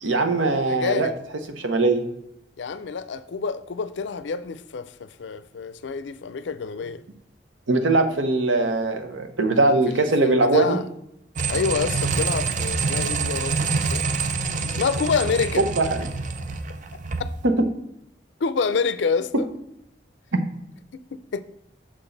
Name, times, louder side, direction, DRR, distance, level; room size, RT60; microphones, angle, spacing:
voice 1, 0.0-1.1 1.6-2.0 7.7-10.8 15.8-16.1 17.4-17.5, right 2 dB, 90° right, 0.9 m, -21 dB
voice 2, 0.7-1.1 2.6-7.0 9.9-10.9 11.5-13.6 13.9-14.0 14.8-15.7 18.4-19.5 21.1-21.4, left 5 dB, 70° left, 0.4 m, -27 dB
sound 1, 11.4-17.3, right 4 dB, 40° right, 0.5 m, -26 dB
6.3 x 5.8 x 3.9 m
head